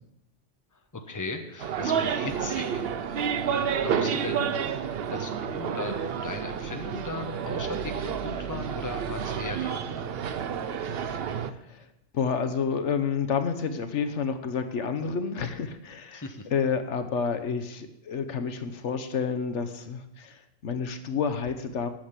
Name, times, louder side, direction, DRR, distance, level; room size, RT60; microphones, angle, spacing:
voice 1, 0.7-2.8 3.7-4.6 5.1-10.2 16.1-16.5, left 3 dB, 15° left, 5 dB, 1.0 m, -38 dB
sound 1, 1.6-11.5, right 7 dB, 60° right, 0.8 m, -30 dB
voice 2, 11.1-11.8 12.1-16.2 16.5-21.9, left 6 dB, 75° left, 9 dB, 1.2 m, -30 dB
9.0 x 7.4 x 8.1 m, 0.84 s
omnidirectional pair, 1.2 m